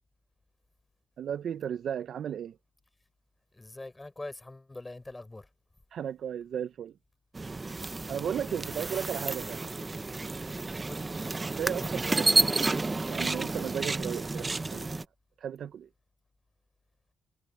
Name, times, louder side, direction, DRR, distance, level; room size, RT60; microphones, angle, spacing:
voice 1, 1.2-2.6 5.9-7.0 8.1-9.6 11.6-15.0 15.4-15.9, right 9 dB, 65° right, 0.8 m, -35 dB
voice 2, 3.5-5.5 8.5-8.8 10.9-11.1, left 2 dB, 15° left, 6.6 m, -43 dB
sound 1, 7.4-15.1, right 3 dB, 25° right, 0.8 m, -30 dB
cardioid pair, 90°, 0 cm